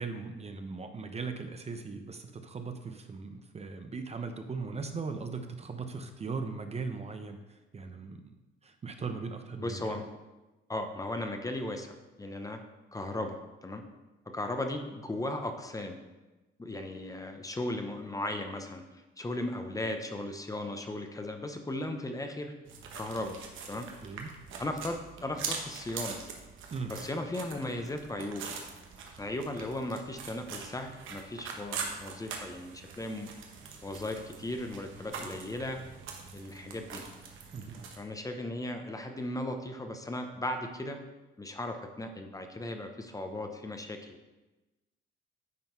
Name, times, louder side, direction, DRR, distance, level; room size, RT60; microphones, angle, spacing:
voice 1, 0.0-8.3 8.6-10.0 23.9-24.3 26.7-26.9 37.5-37.8, right 4 dB, 30° right, 6 dB, 0.7 m, -39 dB
voice 2, 9.6-10.1 10.7-12.6 12.9-13.8 14.3-16.0 16.6-18.8 19.2-22.5 22.9-23.4 23.7-23.9 24.6-26.2 26.9-28.5 29.2-33.3 33.8-35.8 36.3-37.0 38.0-41.0 41.4-44.2, left 1 dB, 15° left, 5 dB, 0.8 m, -36 dB
sound 1, 22.6-38.0, right 5 dB, 80° right, 1.1 m, -43 dB
9.5 x 3.9 x 4.5 m, 1.1 s
cardioid pair, 90°, 20 cm